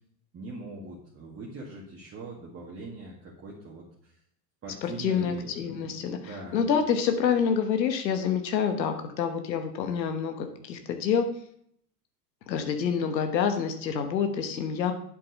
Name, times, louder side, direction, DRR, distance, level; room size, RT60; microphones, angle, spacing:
voice 1, 0.3-4.2 4.6-6.6, right 2 dB, 25° right, -3 dB, 2.0 m, -42 dB
voice 2, 4.8-11.3 12.5-14.9, left 7 dB, 90° left, 6 dB, 1.2 m, -27 dB
7.8 x 7.7 x 5.4 m, 0.67 s
hypercardioid pair, 100°, 50 cm